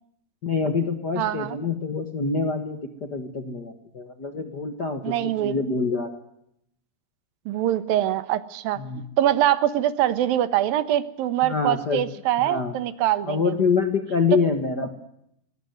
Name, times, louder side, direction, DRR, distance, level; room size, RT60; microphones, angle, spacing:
voice 1, 0.4-5.1 5.4-6.1 8.8-9.0 11.4-12.0 12.4-12.8 13.2-14.9, left 5 dB, 65° left, 6 dB, 0.9 m, -26 dB
voice 2, 1.2-1.6 5.0-5.5 7.5-13.4, right 12 dB, 70° right, 15 dB, 2.7 m, -24 dB
20.5 x 19.0 x 9.3 m, 0.77 s
omnidirectional pair, 4.8 m